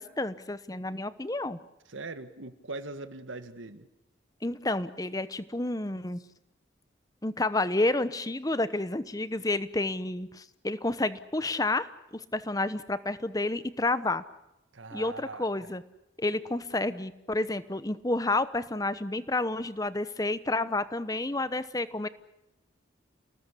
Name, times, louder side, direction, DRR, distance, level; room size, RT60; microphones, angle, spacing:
voice 1, 0.0-1.6 4.4-6.2 7.2-14.2 14.9-15.8 16.2-22.1, left 2 dB, 20° left, 14 dB, 0.9 m, -30 dB
voice 2, 1.9-3.9 14.7-15.5, right 3 dB, 85° right, 10 dB, 1.8 m, -41 dB
29.5 x 19.0 x 8.4 m, 0.91 s
head